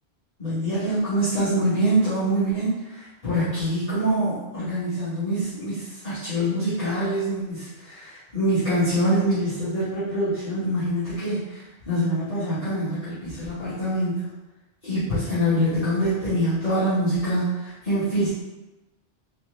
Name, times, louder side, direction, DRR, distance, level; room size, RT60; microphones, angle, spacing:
voice 1, 0.4-14.2 14.8-18.3, right 1 dB, 40° left, -16 dB, 1.8 m, -25 dB
4.3 x 2.2 x 3.8 m, 1.1 s
omnidirectional pair, 1.1 m